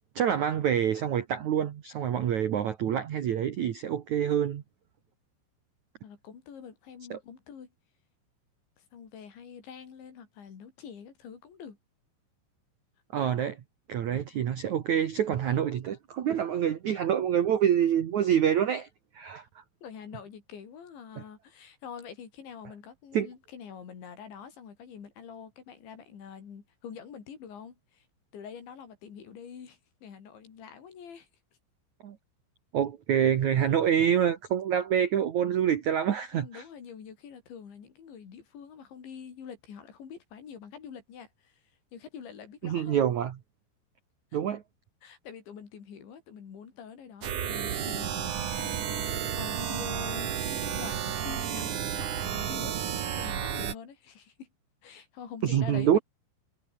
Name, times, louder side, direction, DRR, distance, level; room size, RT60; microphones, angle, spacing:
voice 1, 0.1-4.6 7.1-7.2 13.1-13.6 13.9-18.9 19.1-19.4 23.1-23.3 32.0-32.2 32.7-36.6 42.6-43.3 44.3-44.6 55.4-56.0, right 9 dB, 85° right, 1.6 m, -26 dB
voice 2, 6.0-7.7 8.8-11.8 19.8-28.1 28.3-31.3 36.3-41.6 41.9-43.0 44.3-44.4 45.0-52.8 53.2-54.5 54.8-56.0, left 7 dB, 65° left, 6.4 m, -45 dB
sound 1, 47.2-53.7, right 9 dB, 50° right, 2.8 m, -32 dB
omnidirectional pair, 5.8 m